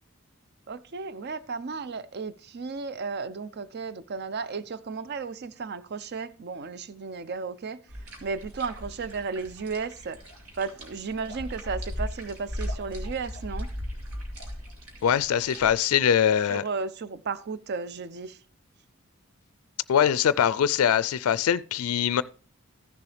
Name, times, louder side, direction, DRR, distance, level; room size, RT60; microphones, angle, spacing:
voice 1, 0.7-7.8 8.2-10.2 10.5-13.7 16.5-18.4, right 4 dB, 50° right, 0.5 m, -34 dB
sound 1, 7.9-15.7, equal, 85° right, 2.5 m, -37 dB
voice 2, 15.0-16.6 19.9-22.2, left 9 dB, 75° left, 0.3 m, -22 dB
14.5 x 6.9 x 3.2 m
head